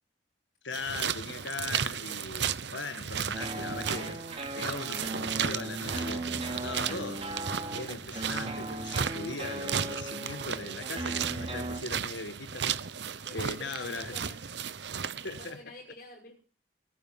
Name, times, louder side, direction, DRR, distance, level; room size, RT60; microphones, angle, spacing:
voice 1, 0.6-4.3 4.5-7.3 7.7-12.7 13.3-14.1 15.2-15.6, left 3 dB, 80° left, 1.6 m, -39 dB
sound 1, 0.7-15.5, right 7 dB, 70° right, 0.8 m, -35 dB
sound 2, 3.3-11.8, right 1 dB, 30° right, 3.5 m, -38 dB
voice 2, 6.2-6.7 7.7-7.8 13.2-14.4 15.0-16.4, left 2 dB, 50° left, 5.8 m, -49 dB
19.5 x 9.6 x 7.3 m
head